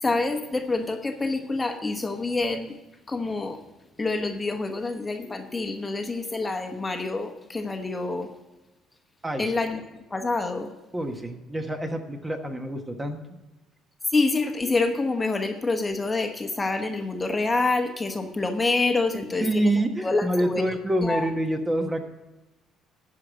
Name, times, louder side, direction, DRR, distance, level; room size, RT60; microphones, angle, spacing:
voice 1, 0.0-2.8 3.1-3.6 4.0-8.3 9.4-9.8 10.1-10.7 14.1-19.7 20.0-20.6 21.0-21.3, left 3 dB, 20° left, 5 dB, 1.0 m, -27 dB
voice 2, 10.9-13.2 19.4-22.0, right 1 dB, 15° right, 5 dB, 1.1 m, -26 dB
11.5 x 4.9 x 7.8 m, 1.1 s
cardioid pair, 105°, 0 cm